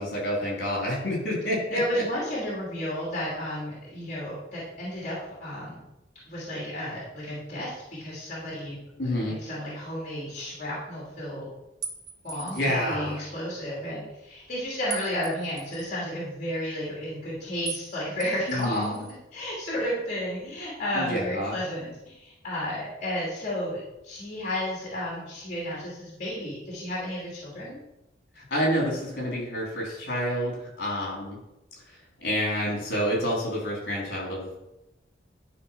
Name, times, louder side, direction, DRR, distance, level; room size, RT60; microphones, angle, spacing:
voice 1, 0.0-2.0 9.0-9.4 12.5-13.2 18.5-19.0 20.9-21.5 28.4-31.4 32.2-34.6, equal, 60° left, -3 dB, 3.8 m, -28 dB
voice 2, 1.7-5.8 6.3-8.8 9.2-11.5 12.2-19.0 19.3-27.8, equal, 40° left, -6 dB, 2.9 m, -32 dB
sound 1, 11.8-12.8 14.9-15.9 17.7-17.9 18.2-19.2, right 6 dB, 75° right, 1.4 m, -39 dB
12.0 x 4.1 x 5.9 m, 0.93 s
head